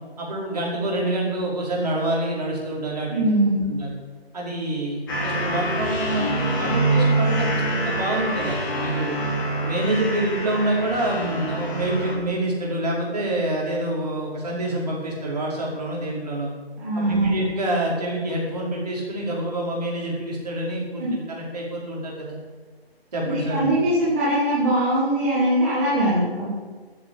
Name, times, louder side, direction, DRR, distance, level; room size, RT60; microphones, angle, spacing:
voice 1, 0.2-3.3 3.7-3.9 4.3-9.2 9.6-16.5 17.0-22.4 23.1-23.7, right 1 dB, 40° right, -3 dB, 5.1 m, -27 dB
voice 2, 3.1-3.7 16.8-17.4 21.0-21.1 23.3-26.5, right 1 dB, 10° right, -8 dB, 1.7 m, -21 dB
sound 1, 5.1-12.1, right 1 dB, 20° left, 3.6 m, -25 dB
13.0 x 9.4 x 8.9 m, 1.4 s
figure-of-eight pair, 170°, 31 cm